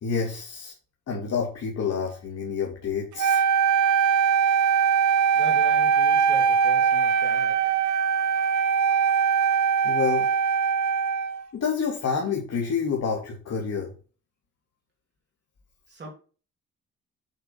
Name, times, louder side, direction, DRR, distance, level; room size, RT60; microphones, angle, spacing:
voice 1, 0.0-0.7 1.1-3.4 4.7-4.8 9.8-10.3 11.5-13.9, left 6 dB, 55° left, 2.9 m, -28 dB
Wind instrument woodwind instrument, 3.2-11.5, right 7 dB, 70° right, 0.9 m, -21 dB
voice 2, 5.3-7.9 15.9-16.1, right 3 dB, 35° right, 3.0 m, -40 dB
7.8 x 5.5 x 6.0 m
cardioid pair, 90°, 30 cm